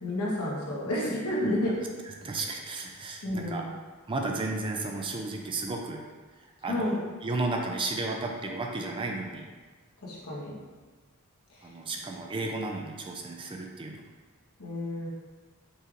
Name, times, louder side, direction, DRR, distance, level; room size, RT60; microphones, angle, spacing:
voice 1, 0.0-1.8 3.2-3.7 6.6-7.0 10.0-10.5 11.6-11.7 14.6-15.1, left 1 dB, 80° left, -5 dB, 1.2 m, -30 dB
voice 2, 2.2-3.7 4.1-6.0 6.6-6.9 7.2-9.5 11.6-14.0, right 2 dB, 25° right, 1 dB, 0.4 m, -33 dB
5.5 x 3.1 x 2.5 m, 1.4 s
head